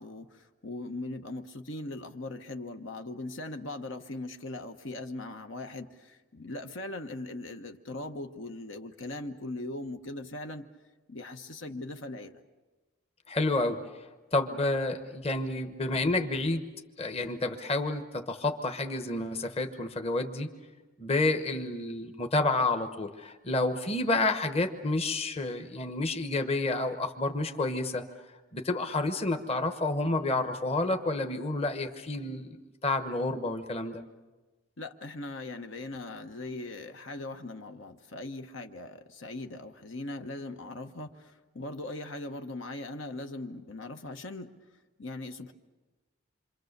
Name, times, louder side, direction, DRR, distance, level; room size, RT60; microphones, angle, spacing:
voice 1, 0.0-10.7 11.1-12.4 34.8-44.5 45.0-45.5, left 2 dB, 75° left, 6 dB, 1.2 m, -40 dB
voice 2, 13.3-13.8 14.3-16.6 17.0-20.5 21.0-28.0 28.5-32.6 32.8-34.0, left 2 dB, 30° left, 6 dB, 1.1 m, -29 dB
27.0 x 25.5 x 6.7 m, 1.2 s
head